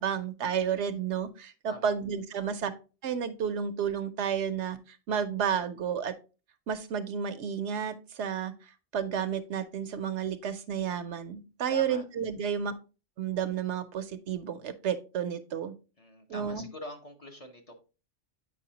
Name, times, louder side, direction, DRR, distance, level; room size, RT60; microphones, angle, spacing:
voice 1, 0.0-2.7 3.0-6.1 6.7-8.5 8.9-12.7 13.2-15.7 16.3-16.7, right 7 dB, 75° right, 11 dB, 1.0 m, -31 dB
voice 2, 1.7-2.0 11.7-12.0 16.0-17.7, left 1 dB, 35° left, 3 dB, 1.0 m, -44 dB
8.3 x 5.4 x 2.8 m, 0.32 s
omnidirectional pair, 1.2 m